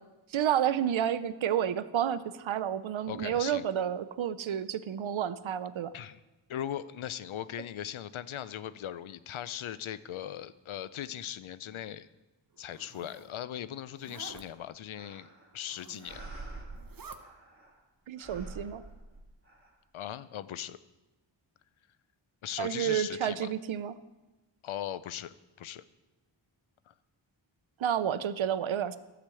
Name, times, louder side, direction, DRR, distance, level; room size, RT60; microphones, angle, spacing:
voice 1, 0.3-5.9 18.1-18.8 22.6-23.9 27.8-29.0, right 9 dB, 75° right, 14 dB, 0.6 m, -30 dB
voice 2, 3.1-3.6 5.9-6.2 6.5-12.1 12.6-15.3 15.5-16.3 19.9-20.8 22.4-23.5 24.6-25.8 26.9-27.0, left 10 dB, 85° left, 15 dB, 0.6 m, -39 dB
Zipper (clothing), 12.5-13.3 13.9-14.4 15.5-16.3 16.7-17.2, right 5 dB, 45° right, 0.9 m, -50 dB
sound 1, 15.0-15.6 16.0-17.8 18.2-19.7, right 3 dB, 30° right, 1.9 m, -46 dB
11.5 x 5.1 x 7.7 m, 1.1 s
wide cardioid pair, 90°, 47 cm